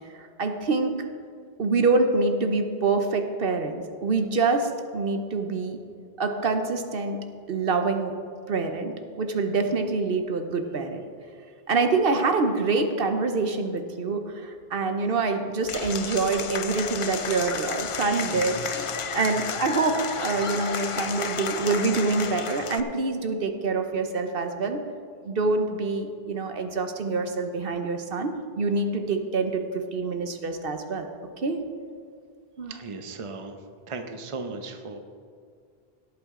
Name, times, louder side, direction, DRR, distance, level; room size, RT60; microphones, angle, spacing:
voice 1, 0.1-1.0 1.6-5.8 6.2-7.2 7.5-8.1 8.5-11.0 11.7-24.8 25.2-31.1 31.4-31.6 32.6-32.7, right 3 dB, 65° right, 6 dB, 1.0 m, -26 dB
Applause / Crowd, 15.6-22.8, left 6 dB, 45° left, 0.4 m, -32 dB
voice 2, 32.7-33.6 33.9-35.0, right 3 dB, 35° right, 6 dB, 0.8 m, -36 dB
17.5 x 8.5 x 3.7 m, 2.2 s
omnidirectional pair, 1.1 m